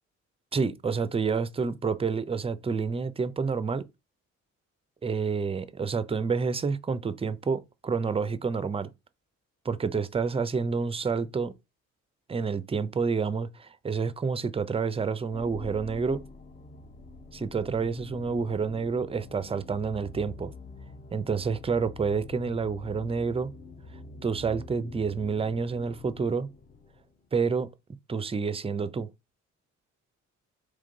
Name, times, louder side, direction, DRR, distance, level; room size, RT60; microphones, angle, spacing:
voice 1, 0.5-3.8 5.0-8.9 9.6-11.5 12.3-16.2 17.3-20.5 21.1-23.5 24.2-26.5 27.3-27.7 28.1-29.1, right 5 dB, 20° right, 0.5 m, -29 dB
sound 1, 15.3-27.2, left 3 dB, 30° left, 0.7 m, -46 dB
3.6 x 3.2 x 3.8 m
cardioid pair, 90°, 30 cm